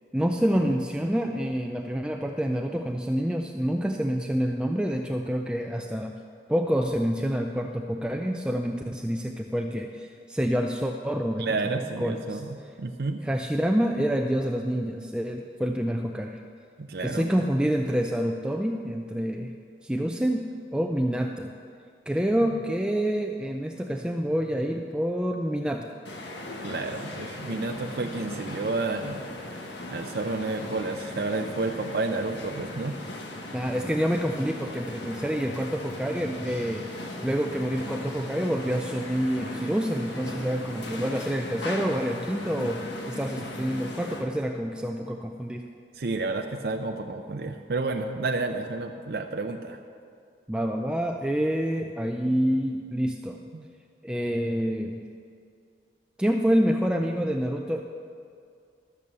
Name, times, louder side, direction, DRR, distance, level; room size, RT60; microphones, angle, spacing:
voice 1, 0.1-6.1 6.5-12.4 13.2-16.4 17.0-19.5 19.8-21.5 22.1-25.8 33.5-36.9 37.2-45.6 50.5-53.4 54.0-55.0 56.2-57.8, equal, 5° right, 3 dB, 0.4 m, -27 dB
voice 2, 11.4-13.2 16.8-17.3 26.6-29.2 29.5-29.6 29.9-33.0 45.9-49.8 53.5-53.6, right 3 dB, 65° right, 5 dB, 0.5 m, -30 dB
sound 1, 26.0-44.3, left 1 dB, 90° left, 1.3 m, -38 dB
13.5 x 6.9 x 6.8 m, 2.3 s
head